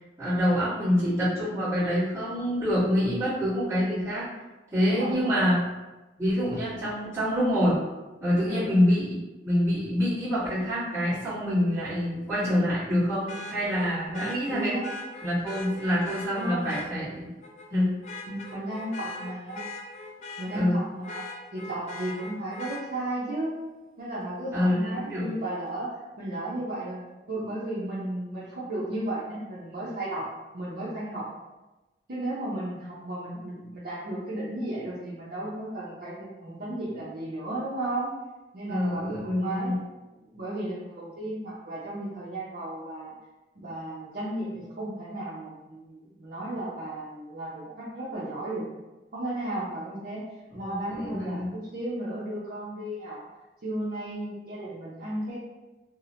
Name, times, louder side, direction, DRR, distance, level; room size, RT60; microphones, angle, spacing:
voice 1, 0.2-4.3 4.7-5.6 6.2-7.8 8.2-9.1 9.4-14.7 15.2-17.3 17.7-17.9 20.5-20.8 24.5-25.3 38.7-39.8 50.6-51.5, equal, 15° right, -15 dB, 1.2 m, -26 dB
voice 2, 4.8-5.4 8.5-8.7 14.1-14.9 16.3-16.7 18.3-19.6 20.4-21.2 21.5-23.6 24.0-25.9 26.2-27.0 27.3-30.2 30.5-31.2 32.1-36.1 36.4-38.1 38.5-39.7 40.3-43.1 43.6-48.7 49.1-50.2 50.5-53.2 53.6-55.4, right 1 dB, 55° right, -9 dB, 0.6 m, -34 dB
Vehicle horn car horn honking, 10.4-10.6 13.3-16.9 17.4-17.7 18.0-20.7 21.0-22.8 24.6-24.7, left 2 dB, 40° left, 0.3 m, -40 dB
2.7 x 2.1 x 2.7 m, 1.1 s
head